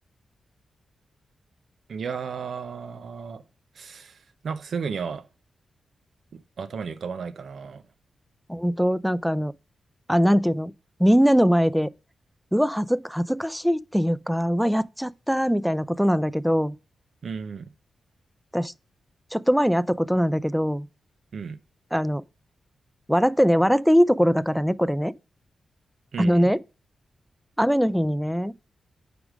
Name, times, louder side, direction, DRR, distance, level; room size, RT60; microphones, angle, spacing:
voice 1, 1.9-3.4 3.8-4.2 4.4-5.2 6.6-7.8 17.2-17.7 21.3-21.6 26.1-26.5, right 6 dB, 70° right, 0.6 m, -33 dB
voice 2, 8.5-9.5 10.1-10.7 11.0-11.9 12.5-16.8 18.5-18.7 19.3-20.9 21.9-22.2 23.1-25.1 26.2-26.6 27.6-28.5, equal, ahead, 0.4 m, -21 dB
5.1 x 4.7 x 6.2 m
cardioid pair, 55°, 0 cm